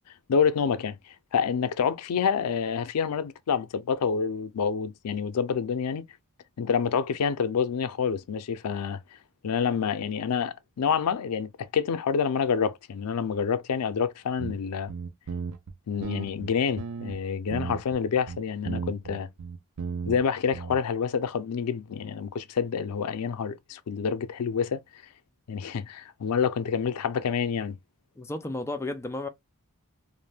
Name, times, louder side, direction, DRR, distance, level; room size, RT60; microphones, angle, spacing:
voice 1, 0.3-6.0 6.6-9.0 9.4-14.9 15.9-19.3 20.1-24.8 25.5-27.8, left 6 dB, 90° left, 0.4 m, -27 dB
sound 1, 14.4-14.6 14.9-15.7 16.0-17.2 17.5-18.0 18.3-20.2 20.5-20.8, right 5 dB, 85° right, 0.5 m, -34 dB
voice 2, 28.2-29.3, left 2 dB, 10° left, 0.3 m, -33 dB
2.5 x 2.1 x 3.2 m
head